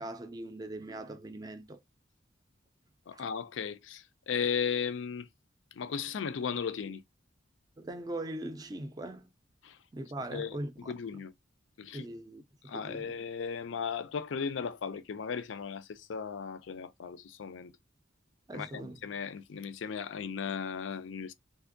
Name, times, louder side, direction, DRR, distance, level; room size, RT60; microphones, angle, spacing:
voice 1, 0.0-1.8 3.1-3.2 7.8-9.3 9.9-11.2 11.9-13.2 18.5-19.0, right 1 dB, 20° right, 0.4 m, -41 dB
voice 2, 3.1-5.3 5.8-7.0 9.6-9.8 10.3-11.3 11.8-12.1 12.7-17.7 18.5-21.3, left 6 dB, 80° left, 0.4 m, -36 dB
3.5 x 2.5 x 2.5 m
head